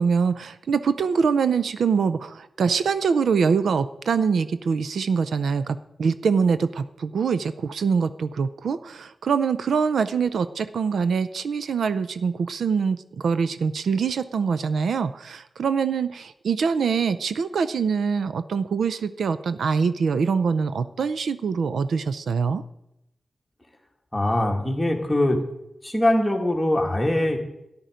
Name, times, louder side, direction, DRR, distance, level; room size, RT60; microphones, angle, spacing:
voice 1, 0.0-22.6, right 5 dB, 85° right, 13 dB, 0.5 m, -24 dB
voice 2, 24.1-25.4 25.8-27.4, left 1 dB, 5° left, 0 dB, 2.0 m, -22 dB
13.5 x 10.5 x 5.1 m, 0.85 s
wide cardioid pair, 150°, 0 cm